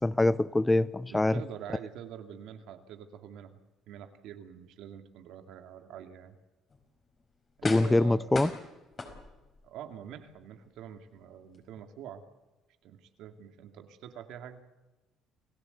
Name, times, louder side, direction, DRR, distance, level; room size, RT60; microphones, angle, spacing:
voice 1, 0.0-1.4 7.6-8.5, left 2 dB, 10° left, 0.7 m, -24 dB
voice 2, 1.1-3.6 3.9-6.4 7.6-8.4 9.6-12.2 12.8-14.6, right 9 dB, 75° right, 2.4 m, -45 dB
sound 1, 6.7-6.8 7.6-8.1 8.3-9.6 10.1-10.2, left 3 dB, 35° left, 4.9 m, -38 dB
29.0 x 16.0 x 8.3 m
cardioid pair, 100°, 0 cm